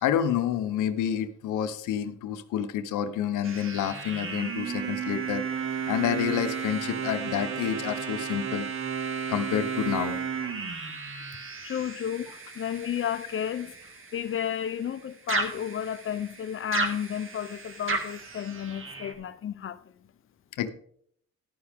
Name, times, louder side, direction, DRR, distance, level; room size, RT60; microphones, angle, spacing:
voice 1, 0.0-5.4 5.9-8.7 9.3-10.2 20.6-20.7, left 9 dB, 85° left, 0.9 m, -28 dB
sound 1, 3.4-14.9 15.3-19.1, right 5 dB, 45° right, 1.8 m, -34 dB
voice 2, 11.6-13.7 14.1-19.8, left 9 dB, 45° left, 0.7 m, -32 dB
11.5 x 9.9 x 3.6 m
cardioid pair, 90°, 30 cm